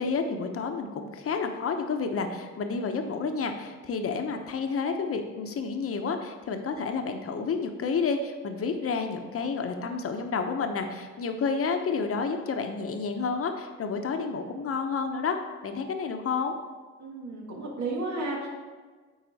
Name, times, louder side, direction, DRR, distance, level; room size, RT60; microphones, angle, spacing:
voice 1, 0.0-16.5, left 5 dB, 50° left, 5 dB, 0.9 m, -30 dB
voice 2, 17.0-18.5, right 2 dB, 65° right, -2 dB, 1.9 m, -33 dB
8.9 x 4.1 x 4.1 m, 1.4 s
cardioid pair, 90°, 30 cm